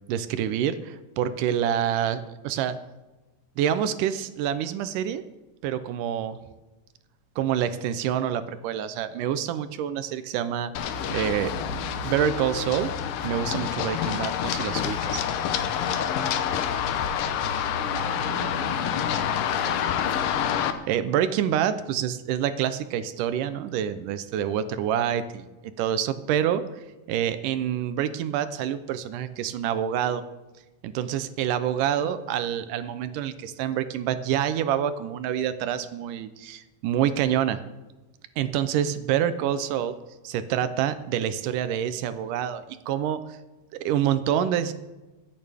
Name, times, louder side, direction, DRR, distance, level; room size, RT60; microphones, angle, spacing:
voice 1, 0.1-2.8 3.6-5.2 5.6-6.4 7.4-11.5 12.0-12.9 13.2-15.2 20.9-25.4 25.8-26.6 27.1-30.2 30.8-37.6 38.4-40.0 40.2-43.2 43.7-44.7, right 10 dB, 80° right, 12 dB, 2.2 m, -27 dB
Run, 10.8-20.7, left 8 dB, 85° left, 2.5 m, -27 dB
voice 2, 17.5-19.9 32.0-32.3, right 2 dB, 60° right, 0 dB, 3.5 m, -41 dB
24.5 x 8.8 x 3.5 m, 1.1 s
omnidirectional pair, 3.7 m